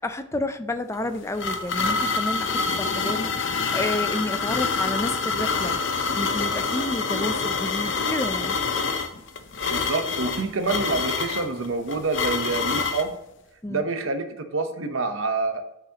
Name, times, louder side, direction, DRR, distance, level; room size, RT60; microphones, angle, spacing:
voice 1, 0.0-8.6 13.6-13.8, left 1 dB, 15° left, 10 dB, 0.4 m, -30 dB
sound 1, 0.9-13.1, left 4 dB, 60° left, 0.6 m, -26 dB
voice 2, 9.7-13.1 13.7-15.6, right 3 dB, 75° right, 7 dB, 0.9 m, -27 dB
8.5 x 6.0 x 2.9 m, 0.91 s
head